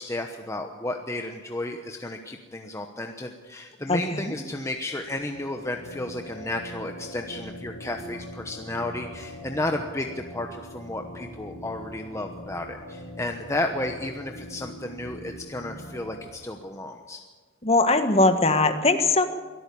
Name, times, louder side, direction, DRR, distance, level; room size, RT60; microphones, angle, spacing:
voice 1, 0.0-17.2, left 1 dB, 15° left, 4 dB, 1.0 m, -33 dB
voice 2, 3.9-4.3 17.6-19.3, left 2 dB, 30° left, 8 dB, 1.5 m, -21 dB
sound 1, 4.9-16.3, equal, 55° left, 2.8 m, -42 dB
23.0 x 13.0 x 8.4 m, 1.4 s
head